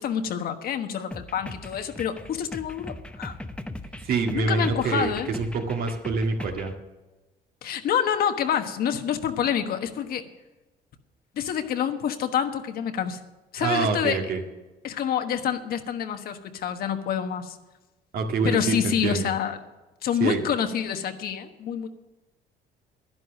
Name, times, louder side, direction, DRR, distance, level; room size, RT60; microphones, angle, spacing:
voice 1, 0.0-3.4 4.3-5.3 7.6-10.2 11.4-13.2 13.5-14.2 14.8-17.6 18.4-19.6 20.0-21.9, left 8 dB, 65° left, 7 dB, 1.3 m, -27 dB
sound 1, 1.1-6.8, left 1 dB, 5° left, 0.8 m, -39 dB
voice 2, 4.0-6.7 13.6-14.4 18.1-19.3 20.2-20.4, right 4 dB, 60° right, 3 dB, 2.0 m, -26 dB
11.5 x 11.0 x 6.3 m, 1.1 s
cardioid pair, 110°, 17 cm